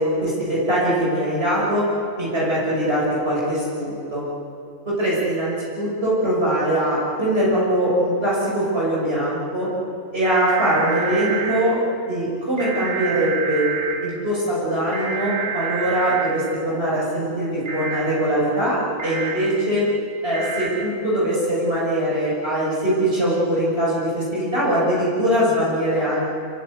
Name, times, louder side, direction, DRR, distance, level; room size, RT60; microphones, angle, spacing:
voice 1, 0.0-1.9 2.2-4.3 4.8-9.7 10.1-11.8 12.1-13.7 14.0-19.9 20.2-26.2, right 1 dB, 45° right, -7 dB, 6.6 m, -22 dB
sound 1, 10.2-11.6 12.6-13.9 14.9-16.3 17.7-18.0 19.0-19.3 20.3-20.7, right 6 dB, 60° right, 5.0 m, -28 dB
28.5 x 23.0 x 8.4 m, 2.5 s
omnidirectional pair, 1.4 m